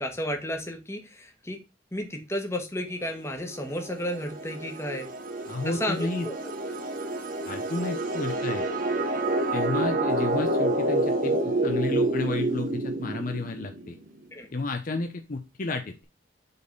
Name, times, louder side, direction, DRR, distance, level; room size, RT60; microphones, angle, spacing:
voice 1, 0.0-1.6 1.9-5.1 5.6-6.3 14.3-14.5, equal, 15° left, 3 dB, 1.3 m, -32 dB
sound 1, 3.4-13.9, right 1 dB, 45° right, 1.0 m, -28 dB
voice 2, 5.5-6.3 7.5-8.7 9.5-14.0 14.5-15.9, left 2 dB, 45° left, 6 dB, 0.7 m, -32 dB
5.2 x 4.2 x 5.3 m, 0.27 s
head